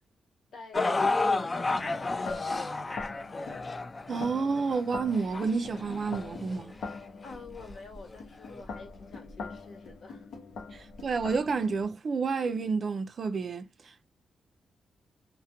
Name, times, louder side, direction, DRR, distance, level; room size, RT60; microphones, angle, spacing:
voice 1, 0.5-3.7 7.2-10.3, left 4 dB, 65° left, 1.1 m, -48 dB
sound 1, 0.7-7.0 7.7-7.8 8.5-8.6, left 3 dB, 30° left, 0.3 m, -31 dB
sound 2, 1.7-11.9, left 4 dB, 85° left, 0.7 m, -44 dB
voice 2, 4.1-6.7 10.7-14.1, right 4 dB, 50° right, 0.4 m, -30 dB
2.2 x 2.0 x 2.8 m
cardioid pair, 90°, 0 cm